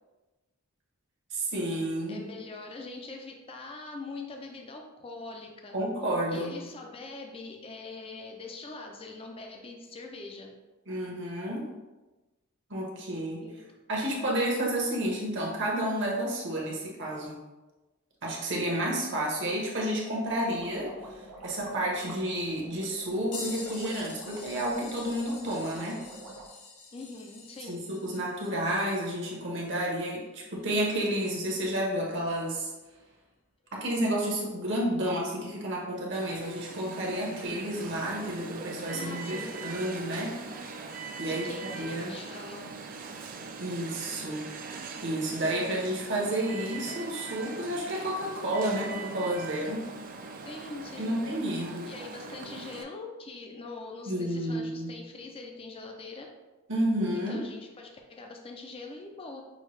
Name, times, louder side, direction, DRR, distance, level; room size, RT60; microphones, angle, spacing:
voice 1, 1.3-2.2 5.7-6.6 10.9-11.7 12.7-13.4 13.9-17.4 18.2-26.0 27.7-32.7 33.7-40.3 41.2-42.1 43.6-44.5 45.0-49.8 51.0-51.9 54.1-55.0 56.7-57.4, right 1 dB, 55° right, -3 dB, 1.1 m, -31 dB
voice 2, 2.1-5.8 6.3-10.5 13.4-13.7 26.9-27.9 38.9-39.7 41.2-42.7 50.4-51.2 51.9-56.3 57.1-59.4, left 3 dB, 25° left, 2 dB, 0.4 m, -43 dB
sound 1, 20.3-26.5, right 2 dB, 85° right, 0.8 m, -47 dB
sound 2, 23.3-31.5 32.2-32.4 34.6-34.7 35.8-35.9 37.0-37.1, left 4 dB, 80° left, 0.8 m, -47 dB
Alarm, 36.1-52.8, right 4 dB, 40° right, 0.4 m, -41 dB
6.3 x 2.3 x 3.2 m, 1.1 s
head